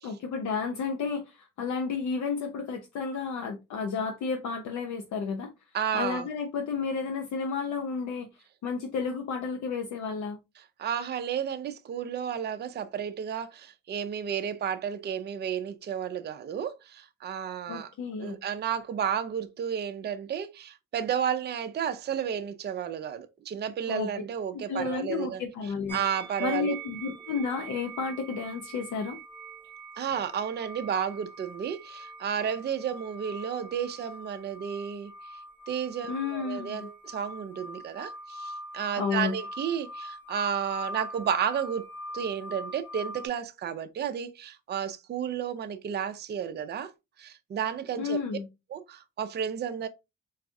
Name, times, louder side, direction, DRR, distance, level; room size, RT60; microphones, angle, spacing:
voice 1, 0.0-5.5 5.9-10.4 17.7-18.4 23.9-24.2 24.5-26.0 26.4-29.2 36.1-36.9 39.0-39.3 48.0-48.5, left 5 dB, 70° left, 0.6 m, -32 dB
voice 2, 5.7-6.3 10.8-17.9 18.2-25.4 25.9-26.7 30.0-35.1 35.7-41.8 42.1-46.9 47.2-48.2 48.7-49.9, right 8 dB, 35° right, 0.4 m, -32 dB
sound 1, 25.9-43.3, right 2 dB, 5° left, 0.6 m, -43 dB
4.0 x 2.3 x 2.6 m
cardioid pair, 90°, 30 cm